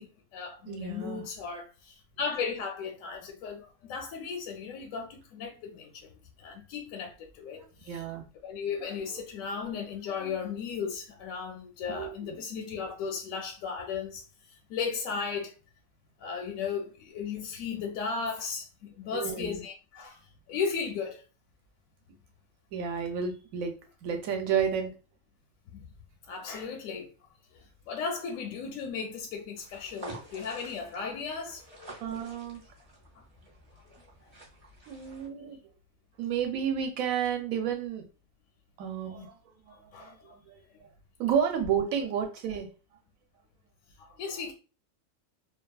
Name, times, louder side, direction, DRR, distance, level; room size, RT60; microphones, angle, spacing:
voice 1, 0.0-6.1 6.4-8.0 8.4-14.2 14.7-15.5 16.2-20.2 20.5-21.2 25.7-25.8 26.3-27.1 27.5-32.0 33.2-33.3 39.9-40.4 44.0-44.5, left 5 dB, 70° left, 0.9 m, -36 dB
voice 2, 0.7-1.2 7.6-8.2 8.8-9.0 10.2-10.4 11.9-12.3 19.1-19.6 22.7-23.7 24.0-24.9 32.0-32.6 34.9-35.6 36.2-38.0 38.8-39.4 39.7-40.6 41.2-42.7, right 7 dB, 70° right, 0.9 m, -31 dB
sound 1, 29.6-35.3, right 3 dB, 35° right, 0.6 m, -49 dB
2.7 x 2.3 x 2.3 m
omnidirectional pair, 1.6 m